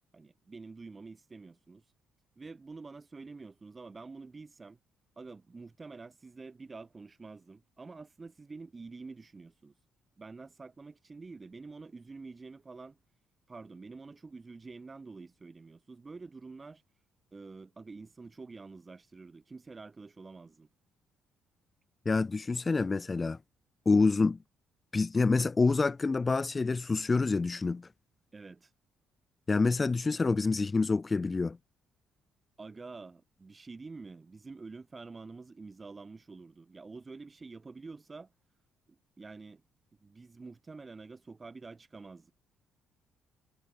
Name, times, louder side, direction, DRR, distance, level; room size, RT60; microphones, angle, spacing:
voice 1, 0.1-1.8 2.4-4.8 5.2-9.7 10.2-13.0 13.5-16.8 17.3-20.7 28.3-28.7 32.6-38.3 38.9-39.6 40.0-42.3, right 4 dB, 30° right, 7.1 m, -48 dB
voice 2, 22.1-23.4 23.9-24.4 24.9-27.9 29.5-31.6, left 4 dB, 30° left, 0.7 m, -27 dB
supercardioid pair, 75°, 0 cm